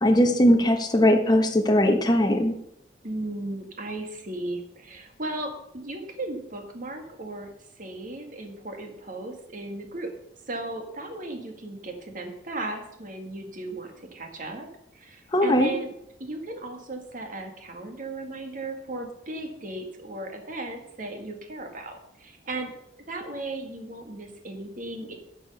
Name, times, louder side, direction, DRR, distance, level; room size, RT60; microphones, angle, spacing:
voice 1, 0.0-2.5 15.3-15.7, left 1 dB, 25° left, 4 dB, 1.2 m, -20 dB
voice 2, 3.0-7.5 7.8-10.1 10.5-14.7 14.9-15.9 16.2-22.7 23.1-25.2, right 2 dB, 50° right, 4 dB, 2.0 m, -36 dB
12.5 x 6.9 x 5.6 m, 0.76 s
head